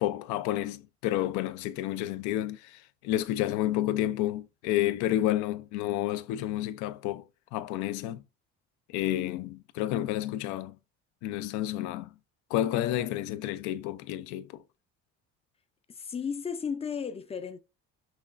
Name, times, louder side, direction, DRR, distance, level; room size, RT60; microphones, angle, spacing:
voice 1, 0.0-2.8 3.0-8.2 8.9-10.8 11.2-12.1 12.5-14.6, left 13 dB, 80° left, 0.5 m, -30 dB
voice 2, 15.9-17.6, left 6 dB, 20° left, 0.4 m, -34 dB
5.8 x 2.3 x 2.4 m
cardioid pair, 115°, 29 cm